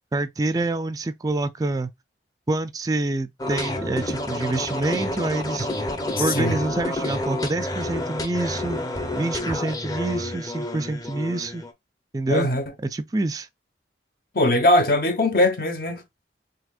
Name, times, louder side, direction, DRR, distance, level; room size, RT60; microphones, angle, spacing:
voice 1, 0.1-1.9 2.5-5.7 6.2-8.8 9.1-11.6 12.1-12.5 12.8-13.5, right 2 dB, 20° right, 0.4 m, -26 dB
sound 1, 3.4-11.7, left 1 dB, 20° left, 0.7 m, -29 dB
voice 2, 6.2-6.6 12.3-12.6 14.3-16.0, left 1 dB, 55° left, 1.1 m, -20 dB
6.0 x 2.9 x 2.4 m
head